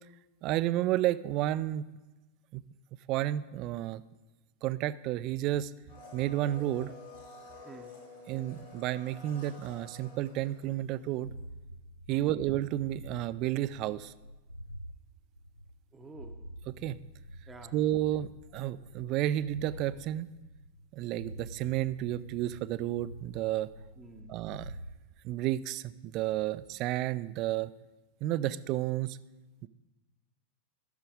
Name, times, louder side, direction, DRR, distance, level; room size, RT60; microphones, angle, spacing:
voice 1, 0.4-1.9 2.5-2.6 3.1-4.0 4.6-5.7 6.1-6.9 8.3-11.3 12.1-14.1 16.8-17.0 17.7-20.3 20.9-23.7 24.3-24.7 25.2-27.7 28.2-29.2 29.6-29.7, right 14 dB, 40° right, 16 dB, 0.3 m, -31 dB
Domestic sounds home sounds, 5.9-11.1 11.4-11.5, left 3 dB, 70° left, 2.9 m, -50 dB
voice 2, 7.6-8.0 12.1-12.3 15.9-16.4 17.5-17.7 24.0-24.3, right 3 dB, 15° right, 5 dB, 0.7 m, -49 dB
sound 1, 11.1-15.0 15.3-20.0 20.3-20.9 21.1-25.0, equal, 85° left, 0.4 m, -47 dB
13.0 x 6.5 x 5.0 m, 1.1 s
figure-of-eight pair, 90°, 0 cm